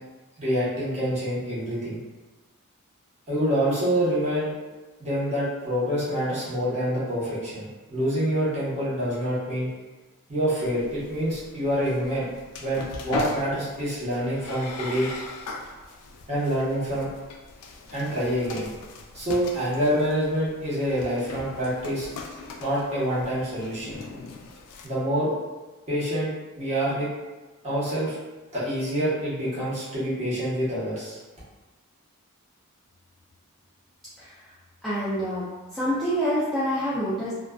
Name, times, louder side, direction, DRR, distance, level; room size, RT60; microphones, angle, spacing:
voice 1, 0.4-2.0 3.3-4.6 5.0-9.7 10.3-12.3 12.6-15.1 16.3-17.1 17.9-18.7 19.1-22.1 22.6-24.0 24.8-25.3 25.9-27.1 27.6-28.1 28.5-31.2, equal, 30° right, -10 dB, 1.0 m, -26 dB
sound 1, 10.6-24.9, left 3 dB, 80° left, 0.3 m, -40 dB
voice 2, 34.2-35.5 35.7-37.3, equal, ahead, -12 dB, 0.4 m, -27 dB
2.4 x 2.3 x 2.3 m, 1.2 s
head